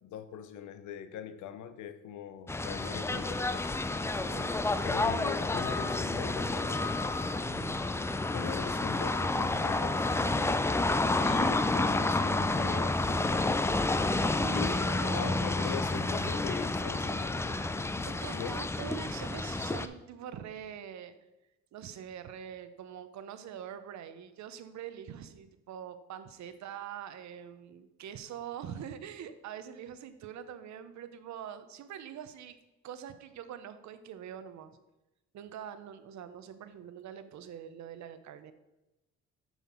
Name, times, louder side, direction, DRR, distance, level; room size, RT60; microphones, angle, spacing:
voice 1, 0.0-3.6 4.8-6.9 8.3-10.1 11.2-13.8 14.5-17.6 18.3-18.6, left 8 dB, 80° left, 11 dB, 0.7 m, -41 dB
sound 1, 2.5-19.9, left 2 dB, 10° left, 0.3 m, -30 dB
voice 2, 4.2-4.8 7.4-8.0 14.4-15.7 16.1-16.4 18.0-21.1 21.7-32.6 32.8-34.7 35.3-38.5, right 9 dB, 70° right, 11 dB, 0.7 m, -44 dB
7.1 x 5.7 x 4.4 m, 0.99 s
cardioid pair, 90°, 30 cm